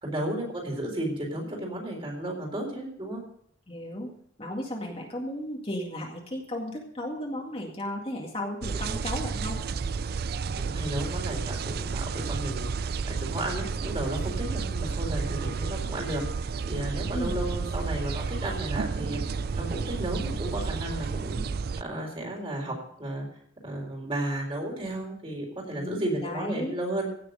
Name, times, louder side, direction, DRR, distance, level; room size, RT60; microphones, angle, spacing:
voice 1, 0.0-3.2 10.5-21.4 21.8-23.3 23.6-27.1, right 1 dB, 30° right, 0 dB, 3.9 m, -33 dB
voice 2, 3.7-4.1 4.4-9.6 17.1-17.3 25.8-26.8, left 1 dB, 30° left, 0 dB, 2.0 m, -34 dB
sound 1, 8.6-21.8, right 5 dB, 55° right, 0.4 m, -31 dB
16.5 x 6.7 x 6.6 m, 0.66 s
head